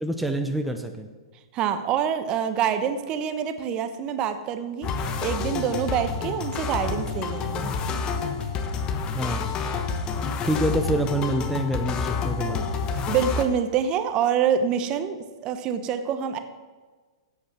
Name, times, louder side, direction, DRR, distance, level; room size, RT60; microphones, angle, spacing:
voice 1, 0.0-1.1 9.1-9.5 10.4-12.7, right 1 dB, ahead, 5 dB, 0.8 m, -26 dB
voice 2, 1.5-7.7 13.1-16.4, right 8 dB, 35° right, 9 dB, 1.0 m, -26 dB
sound 1, 4.8-13.4, left 5 dB, 30° left, 1.1 m, -28 dB
10.0 x 8.3 x 6.0 m, 1.4 s
hypercardioid pair, 120°, 3 cm